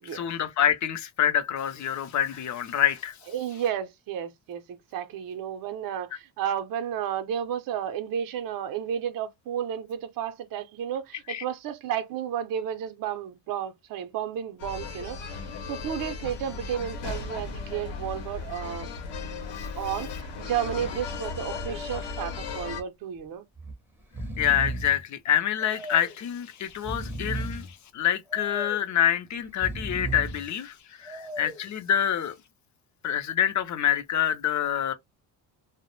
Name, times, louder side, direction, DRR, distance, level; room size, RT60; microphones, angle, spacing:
voice 1, 0.1-3.2 11.3-11.4 24.4-27.7 27.9-32.3 33.0-34.9, left 10 dB, 40° left, 0.5 m, -26 dB
voice 2, 3.3-18.9 19.8-23.5, right 9 dB, 50° right, 0.6 m, -32 dB
sound 1, 14.6-22.8, left 4 dB, 70° left, 0.8 m, -36 dB
Breathing, 21.9-22.3 22.6-22.7 23.6-23.8 24.0-25.0 25.6-26.2 26.7-27.7 28.3-28.9 29.5-30.5 31.1-31.7, right 1 dB, 5° right, 0.6 m, -35 dB
2.1 x 2.1 x 3.0 m
cardioid pair, 125°, 45 cm